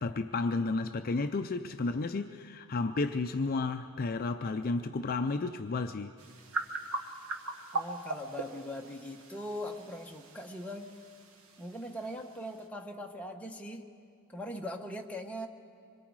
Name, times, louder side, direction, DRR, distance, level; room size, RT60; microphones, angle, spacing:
voice 1, 0.0-6.1, left 3 dB, 45° left, 8 dB, 0.5 m, -32 dB
sound 1, 6.2-12.7, right 3 dB, 70° right, 1.4 m, -41 dB
voice 2, 7.7-11.0 11.6-13.9 14.3-15.5, equal, 5° left, 1 dB, 1.1 m, -41 dB
26.0 x 22.0 x 4.8 m, 2.4 s
head